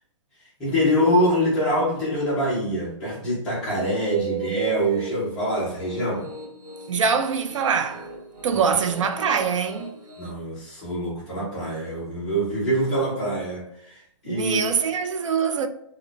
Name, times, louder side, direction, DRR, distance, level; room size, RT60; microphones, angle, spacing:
voice 1, 0.6-6.3 8.5-8.8 10.2-14.6, equal, 5° left, 0.3 m, -25 dB
Piano, 3.5-10.3, left 1 dB, 25° right, 0.8 m, -43 dB
voice 2, 3.8-5.1 6.9-8.1 8.4-10.0 14.2-15.7, right 6 dB, 75° right, 0.4 m, -24 dB
2.2 x 2.2 x 3.8 m
hypercardioid pair, 180°, 16 cm